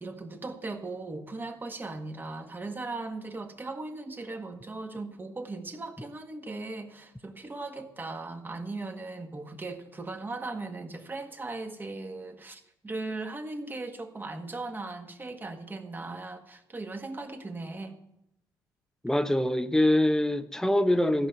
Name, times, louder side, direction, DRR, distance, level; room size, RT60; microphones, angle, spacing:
voice 1, 0.0-18.0, right 3 dB, 25° right, 1.6 m, -38 dB
voice 2, 19.0-21.3, left 1 dB, 5° left, 0.9 m, -24 dB
14.5 x 5.5 x 7.9 m
supercardioid pair, 70°, 9 cm